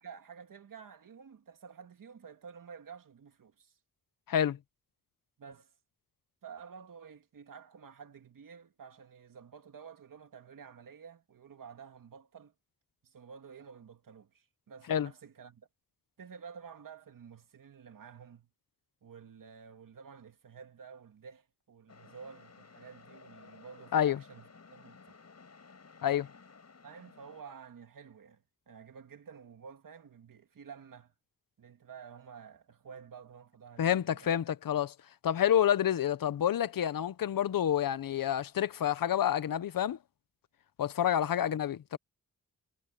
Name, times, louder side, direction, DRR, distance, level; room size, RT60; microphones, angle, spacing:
voice 1, 0.0-3.7 5.4-5.7 6.4-12.5 13.0-15.7 16.2-18.5 19.0-25.2 26.8-31.1 31.6-34.3 41.4-41.6, right 6 dB, 75° right, 2.4 m, -51 dB
voice 2, 4.3-4.6 14.9-15.1 23.9-24.2 26.0-26.3 33.8-34.9 35.2-40.0 40.8-42.0, left 10 dB, 85° left, 0.9 m, -28 dB
sound 1, 21.9-27.4, left 5 dB, 50° left, 6.1 m, -56 dB
wide cardioid pair, 85°, 33 cm